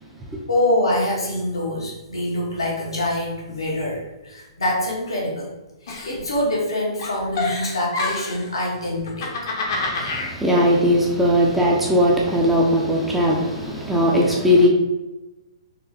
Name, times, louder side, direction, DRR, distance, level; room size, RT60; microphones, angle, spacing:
voice 1, 0.5-5.5 5.8-9.3, left 1 dB, 70° left, -4 dB, 1.3 m, -25 dB
Giggle, 5.9-6.7 7.0-8.5 9.0-10.3, left 3 dB, 45° left, 0.9 m, -27 dB
voice 2, 9.7-14.7, left 1 dB, 5° right, -3 dB, 0.5 m, -19 dB
4.2 x 3.0 x 2.8 m, 1.1 s
figure-of-eight pair, 120°, 3 cm